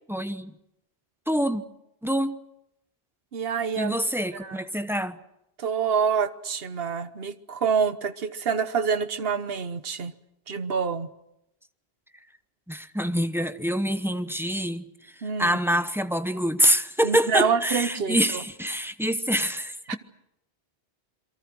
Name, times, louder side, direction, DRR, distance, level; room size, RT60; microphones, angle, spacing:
voice 1, 0.1-0.5 1.3-1.6 2.0-2.3 3.8-5.2 12.7-14.8 15.4-20.0, equal, ahead, 0.9 m, -25 dB
voice 2, 3.3-3.9 4.4-4.6 5.6-10.1 10.5-11.1 15.2-15.6 17.0-18.2 19.9-20.0, right 6 dB, 70° right, 1.3 m, -26 dB
28.0 x 23.0 x 6.2 m
omnidirectional pair, 1.0 m